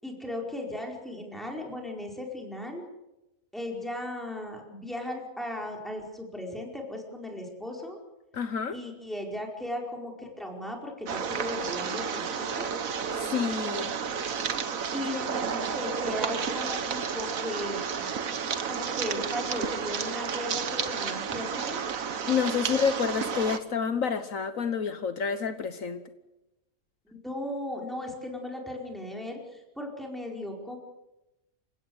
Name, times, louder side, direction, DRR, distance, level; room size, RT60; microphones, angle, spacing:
voice 1, 0.0-2.8 3.5-8.0 8.7-12.7 14.9-18.1 18.7-21.9 27.0-30.8, left 1 dB, ahead, 0 dB, 4.8 m, -37 dB
voice 2, 8.3-8.8 13.2-13.9 14.7-14.9 22.3-26.0, left 6 dB, 70° left, 10 dB, 1.5 m, -29 dB
sound 1, 11.1-23.6, right 6 dB, 70° right, 1.6 m, -31 dB
29.5 x 16.5 x 8.0 m, 0.97 s
omnidirectional pair, 1.5 m